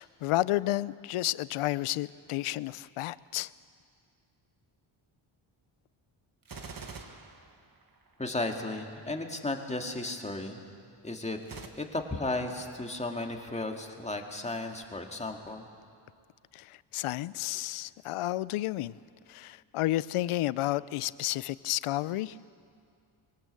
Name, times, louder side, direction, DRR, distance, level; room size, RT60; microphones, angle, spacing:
voice 1, 0.0-3.5 16.5-19.0 19.3-22.4, left 15 dB, 85° left, 19 dB, 0.6 m, -31 dB
Gunshot gunfire, 6.4-8.2 11.4-11.7, right 4 dB, 40° right, 1.8 m, -44 dB
voice 2, 8.2-10.6 11.0-11.4 11.8-15.6, left 2 dB, 15° left, 3 dB, 2.1 m, -34 dB
22.5 x 18.0 x 8.3 m, 2.2 s
cardioid pair, 95°, 50 cm